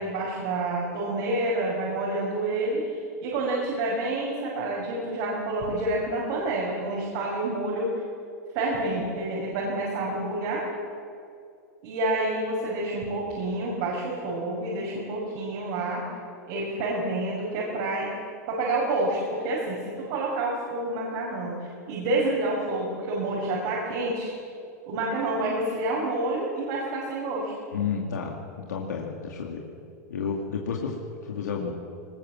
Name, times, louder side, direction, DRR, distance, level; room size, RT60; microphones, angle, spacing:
voice 1, 0.0-7.9 8.5-10.6 11.8-16.0 16.4-18.1 18.5-24.3 24.9-27.5, right 2 dB, 60° right, -4 dB, 6.2 m, -28 dB
voice 2, 27.7-28.4 28.7-29.7 30.1-31.7, left 6 dB, 90° left, -1 dB, 2.5 m, -31 dB
20.5 x 20.0 x 7.7 m, 2.5 s
hypercardioid pair, 125°, 9 cm